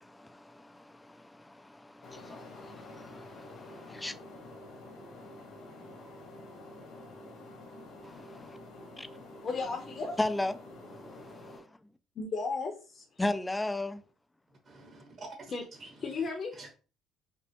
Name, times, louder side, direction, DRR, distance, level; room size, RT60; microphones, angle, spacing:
voice 1, 0.0-4.2 8.0-8.6 9.0-9.1 10.2-11.8 13.2-14.0, left 2 dB, 10° left, 0.4 m, -37 dB
sound 1, 2.0-11.6, left 2 dB, 70° left, 1.5 m, -48 dB
voice 2, 9.4-10.2 11.1-11.3 12.2-13.0 15.5-15.6 16.0-16.5, left 4 dB, 45° left, 0.8 m, -35 dB
voice 3, 14.6-16.2 16.5-16.7, right 3 dB, 55° right, 1.3 m, -48 dB
5.2 x 2.1 x 2.9 m
cardioid pair, 90°, 0 cm